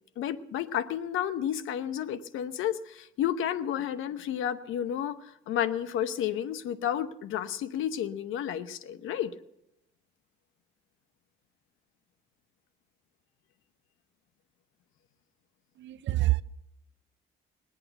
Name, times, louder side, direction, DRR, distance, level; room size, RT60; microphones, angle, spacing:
voice 1, 0.2-9.3, left 10 dB, 85° left, 13 dB, 0.9 m, -31 dB
voice 2, 15.8-16.4, right 17 dB, 70° right, 16 dB, 0.6 m, -26 dB
21.0 x 8.6 x 8.0 m, 0.87 s
cardioid pair, 90°, 20 cm